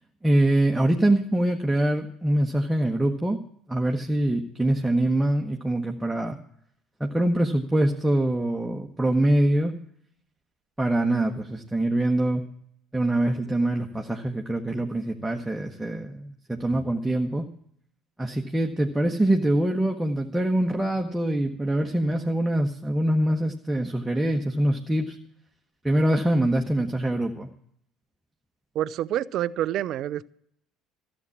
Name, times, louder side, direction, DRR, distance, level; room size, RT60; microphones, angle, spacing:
voice 1, 0.2-3.4 3.7-6.4 7.0-9.7 10.8-12.4 12.9-17.4 18.2-25.2 25.8-27.5, right 1 dB, 5° right, 1 dB, 1.2 m, -24 dB
voice 2, 28.7-30.3, right 12 dB, 50° right, 20 dB, 0.5 m, -27 dB
14.5 x 7.3 x 8.3 m, 0.66 s
figure-of-eight pair, 60°, 0 cm